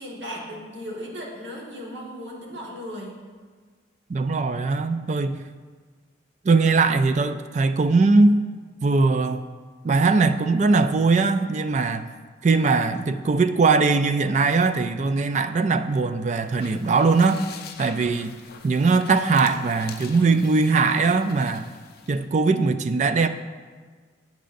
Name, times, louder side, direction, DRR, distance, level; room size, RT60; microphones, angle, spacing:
voice 1, 0.0-3.2, equal, 65° right, -3 dB, 1.5 m, -36 dB
voice 2, 4.1-5.4 6.4-8.5 8.8-9.4 9.8-12.1 12.4-17.4 17.8-18.3 18.6-21.7 22.1-23.3, right 4 dB, 40° right, 10 dB, 0.3 m, -20 dB
sound 1, 16.4-22.2, left 6 dB, 55° left, 0.6 m, -44 dB
10.0 x 8.1 x 2.6 m, 1.5 s
head